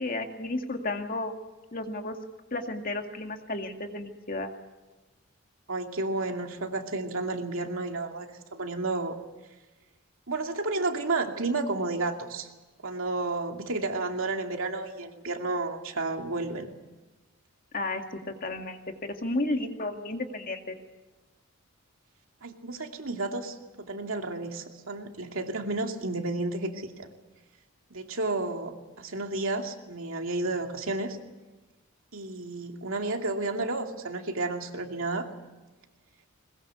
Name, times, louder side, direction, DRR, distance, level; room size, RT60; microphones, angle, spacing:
voice 1, 0.0-1.3 1.7-2.2 2.5-4.5 17.7-20.8, left 2 dB, 40° left, 4 dB, 2.1 m, -33 dB
voice 2, 5.7-9.2 10.3-12.5 12.8-16.7 22.4-27.1 27.9-31.2 32.1-35.3, right 2 dB, 65° right, 3 dB, 2.5 m, -31 dB
21.5 x 21.0 x 8.1 m, 1.2 s
head